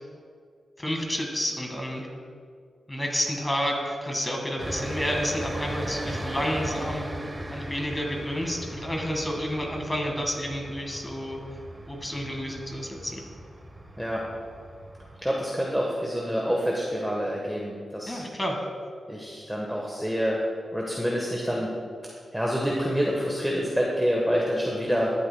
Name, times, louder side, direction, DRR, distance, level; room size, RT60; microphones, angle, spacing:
voice 1, 0.8-2.1 2.9-7.1 7.5-11.4 11.9-13.2 18.1-18.6, equal, 20° left, 1 dB, 1.9 m, -30 dB
sound 1, 4.6-15.3, right 1 dB, 25° right, 1.0 m, -37 dB
voice 2, 15.2-18.2 19.1-20.4 20.7-21.7 22.3-25.1, equal, 5° right, -3 dB, 1.3 m, -27 dB
13.0 x 8.2 x 2.3 m, 2.1 s
cardioid pair, 50°, 0 cm